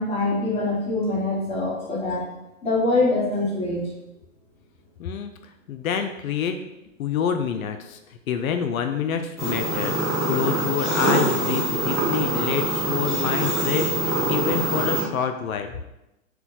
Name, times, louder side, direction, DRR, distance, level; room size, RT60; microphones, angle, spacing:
voice 1, 0.0-2.3 2.6-3.8, left 2 dB, 15° left, -5 dB, 1.1 m, -24 dB
voice 2, 5.0-5.3 5.7-6.6 7.0-15.8, left 7 dB, 80° left, 7 dB, 0.5 m, -27 dB
sound 1, 9.4-15.0, right 1 dB, ahead, 0.4 m, -24 dB
4.4 x 2.2 x 3.9 m, 0.94 s
hypercardioid pair, 125°, 41 cm